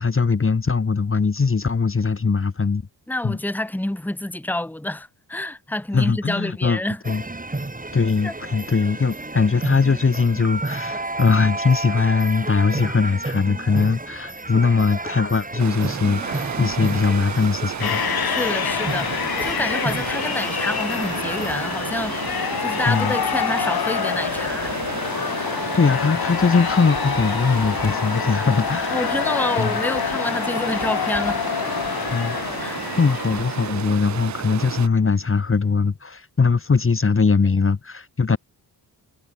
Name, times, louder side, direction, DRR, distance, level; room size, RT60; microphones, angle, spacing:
voice 1, 0.0-2.8 3.2-3.4 5.9-6.8 7.1-7.2 7.9-18.0 22.9-23.1 25.7-29.0 29.6-29.7 32.1-32.4 33.0-38.4, left 4 dB, 30° left, 1.3 m, -21 dB
voice 2, 3.1-7.0 8.2-8.4 18.2-24.8 28.9-31.4 32.6-32.8 38.3-38.4, left 1 dB, 5° left, 1.5 m, -28 dB
sound 1, 7.0-21.7, right 2 dB, 20° right, 3.6 m, -32 dB
Stream, 15.6-34.9, right 10 dB, 45° right, 0.5 m, -32 dB
sound 2, 17.8-34.0, left 8 dB, 60° left, 1.9 m, -26 dB
cardioid pair, 60°, 41 cm